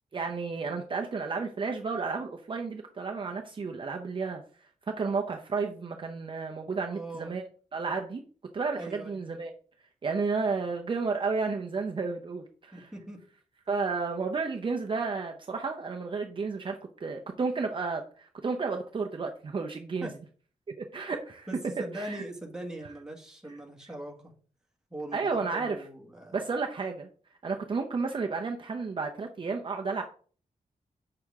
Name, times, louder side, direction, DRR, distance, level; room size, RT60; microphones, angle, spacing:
voice 1, 0.1-4.4 4.9-7.4 7.7-8.2 8.5-9.5 10.0-12.9 13.7-20.1 20.8-21.5 21.9-22.2 25.1-25.8 26.3-27.1 27.4-30.0, right 4 dB, 35° right, 2 dB, 0.7 m, -32 dB
voice 2, 6.8-7.3 8.7-9.2 12.7-13.2 20.0-20.1 21.5-24.3 24.9-26.5, right 1 dB, 5° right, -1 dB, 1.6 m, -41 dB
7.6 x 6.4 x 3.5 m, 0.43 s
wide cardioid pair, 175°, 14 cm